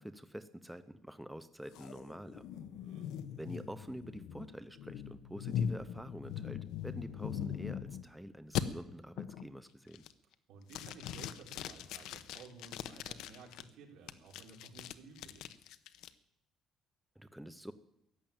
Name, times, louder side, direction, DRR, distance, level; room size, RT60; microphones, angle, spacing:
voice 1, 0.0-2.4 3.4-10.0 17.2-17.7, equal, 5° right, 11 dB, 0.7 m, -47 dB
sound 1, 1.7-8.1 8.6-8.7 9.2-9.5 9.9-10.3 10.7-13.6 14.1-16.1, left 9 dB, 85° left, 0.9 m, -40 dB
voice 2, 2.5-3.1 10.5-15.6, right 4 dB, 85° right, 1 dB, 4.5 m, -55 dB
14.5 x 10.5 x 8.8 m, 0.83 s
cardioid pair, 155°, 0 cm